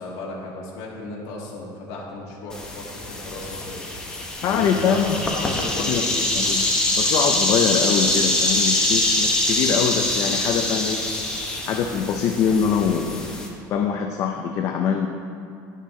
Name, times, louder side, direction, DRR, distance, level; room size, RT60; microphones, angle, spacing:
voice 1, 0.0-4.0 4.5-6.3, left 2 dB, 70° left, -4 dB, 2.0 m, -35 dB
sound 1, 2.5-13.5, left 1 dB, 10° left, 0.8 m, -24 dB
voice 2, 4.4-6.0 6.3-6.7 7.0-11.0 11.7-13.3 13.7-15.1, left 7 dB, 40° left, 3 dB, 0.5 m, -23 dB
11.0 x 6.5 x 3.7 m, 2.5 s
cardioid pair, 160°, 8 cm